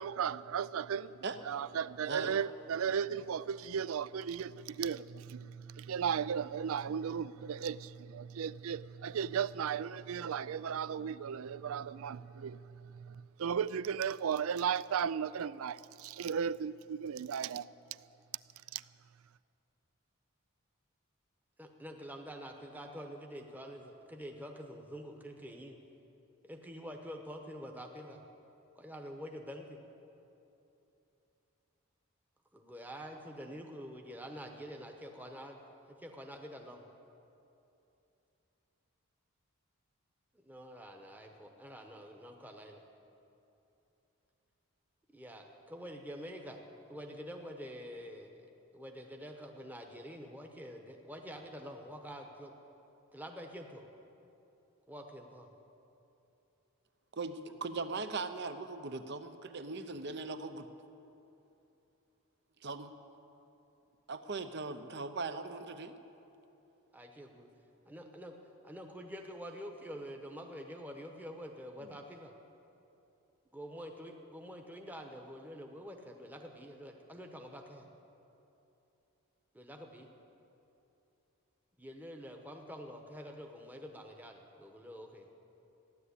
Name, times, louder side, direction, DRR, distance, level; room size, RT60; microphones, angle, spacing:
voice 1, 0.0-17.7 18.7-18.8, right 7 dB, 70° right, 0.4 m, -36 dB
voice 2, 21.6-25.8 26.4-28.2 28.8-29.8 32.5-35.6 35.9-36.8 40.3-42.8 45.1-46.6 46.9-52.5 53.1-53.8 54.9-55.5 66.9-67.5 67.9-68.4 68.6-72.3 73.5-77.9 79.5-80.1 81.8-85.3, equal, 10° right, 1.0 m, -47 dB
voice 3, 57.2-60.7 62.6-62.9 64.1-65.9 71.8-71.9, right 3 dB, 50° right, 0.8 m, -39 dB
15.5 x 11.0 x 8.3 m
head